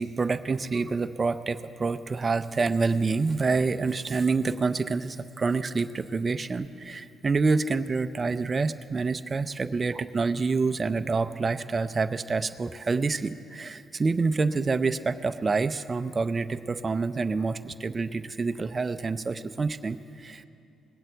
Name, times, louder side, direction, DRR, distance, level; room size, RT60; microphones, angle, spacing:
voice 1, 0.0-20.5, right 4 dB, 30° right, 10 dB, 0.6 m, -27 dB
20.0 x 8.0 x 7.9 m, 2.6 s
cardioid pair, 90°, 0 cm